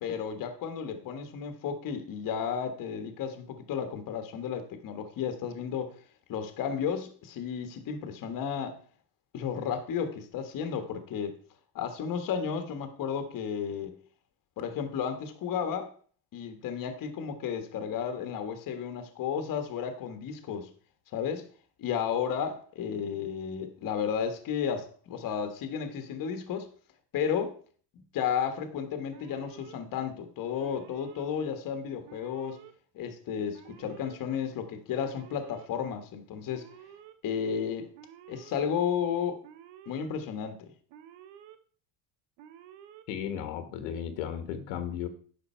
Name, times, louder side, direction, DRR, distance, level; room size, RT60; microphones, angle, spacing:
voice 1, 0.0-5.9 6.3-8.8 9.3-11.3 11.7-13.9 14.6-15.9 16.3-20.7 21.1-21.4 21.8-26.7 27.1-27.5 28.1-32.6 32.9-36.6 37.2-37.9 38.3-39.4 39.9-40.7, left 7 dB, 45° left, 1.5 m, -33 dB
Alarm, 29.1-29.8 30.6-31.2 32.0-32.7 33.5-34.2 35.0-35.7 36.5-37.1 37.9-38.6 39.4-40.1 40.9-41.6 42.4-43.0, right 10 dB, 70° right, 1.2 m, -51 dB
voice 2, 43.1-45.1, left 9 dB, 85° left, 1.6 m, -35 dB
10.0 x 6.3 x 4.4 m
cardioid pair, 135°, 45 cm